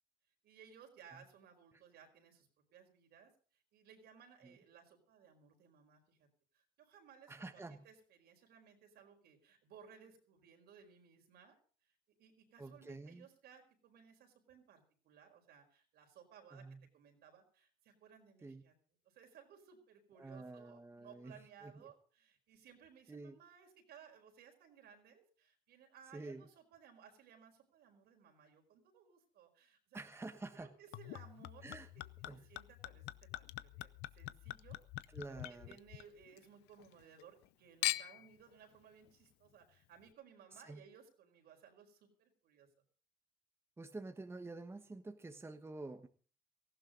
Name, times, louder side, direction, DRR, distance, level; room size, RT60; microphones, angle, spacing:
voice 1, 0.4-6.3 6.5-16.6 16.9-18.7 19.0-30.0 30.5-31.7 31.9-42.7, right 7 dB, 75° right, 3 dB, 4.8 m, -61 dB
voice 2, 7.3-7.8 12.6-13.3 16.5-16.8 18.4-18.6 20.2-21.9 23.1-23.4 26.1-26.5 29.9-30.7 31.6-31.9 32.2-32.4 35.1-35.8 40.7-40.8 43.8-46.1, right 2 dB, 15° right, 7 dB, 1.3 m, -49 dB
Chink clink / Liquid, 30.9-36.4 36.8-37.5 37.8-38.3 39.1-39.2, left 17 dB, 85° left, 0.7 m, -43 dB
18.0 x 15.0 x 3.9 m, 0.40 s
cardioid pair, 110°, 17 cm